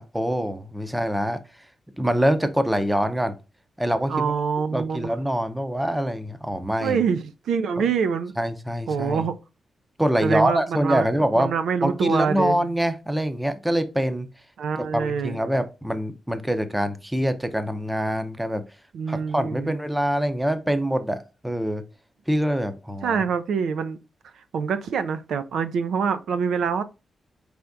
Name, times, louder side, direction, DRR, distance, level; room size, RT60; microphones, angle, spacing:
voice 1, 0.0-1.4 2.0-3.3 3.8-4.3 4.7-7.0 8.4-9.2 10.0-11.5 11.8-14.3 14.8-18.6 19.1-21.8 22.3-23.2, equal, 5° right, 0.5 m, -25 dB
voice 2, 4.1-5.1 6.8-8.3 8.9-9.3 10.2-11.1 11.4-12.6 14.6-15.4 18.9-19.7 23.0-24.0 24.5-26.8, right 6 dB, 90° right, 0.4 m, -25 dB
4.5 x 3.4 x 2.5 m
wide cardioid pair, 115°, 0 cm